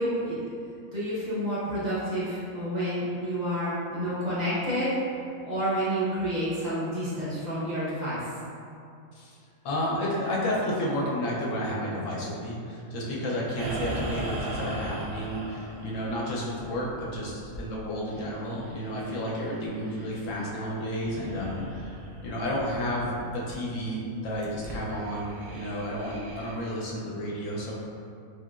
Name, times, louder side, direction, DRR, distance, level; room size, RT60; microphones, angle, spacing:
voice 1, 0.0-8.3, equal, 35° right, -11 dB, 0.9 m, -29 dB
voice 2, 9.6-22.0 22.2-27.7, equal, 70° left, -5 dB, 0.9 m, -31 dB
sound 1, 13.6-20.6 20.9-23.2 23.5-23.6 24.2-26.6, right 1 dB, 65° right, 0.7 m, -39 dB
3.1 x 2.8 x 2.3 m, 2.4 s
omnidirectional pair, 1.4 m